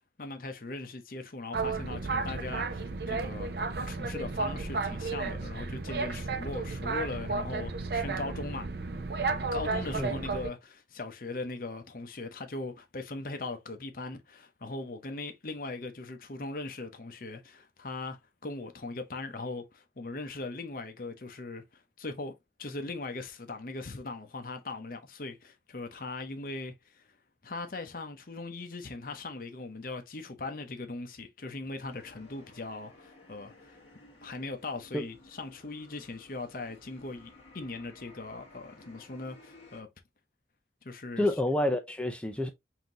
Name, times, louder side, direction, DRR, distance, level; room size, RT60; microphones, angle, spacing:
voice 1, 0.2-3.5 3.8-8.7 9.5-22.3 22.6-27.1 27.4-33.8 34.2-39.9 40.8-41.3, left 3 dB, 50° left, 0.7 m, -39 dB
Boat Water vehicle, 1.5-10.5, right 4 dB, 60° right, 0.5 m, -33 dB
sound 1, 31.9-39.8, left 2 dB, 35° left, 1.4 m, -56 dB
voice 2, 41.2-42.5, left 1 dB, 5° left, 0.4 m, -28 dB
5.7 x 2.6 x 2.8 m
head